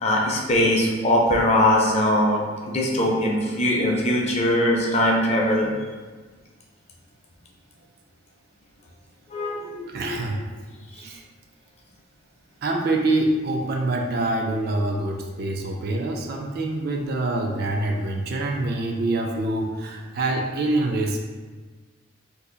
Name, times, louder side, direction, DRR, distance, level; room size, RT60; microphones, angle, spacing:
voice 1, 0.0-2.4 2.7-5.7 9.3-10.2, left 1 dB, 35° left, -2 dB, 0.5 m, -21 dB
voice 2, 9.9-10.4 10.9-11.2 12.6-21.2, right 2 dB, 50° right, 2 dB, 0.3 m, -25 dB
2.6 x 2.4 x 3.8 m, 1.4 s
head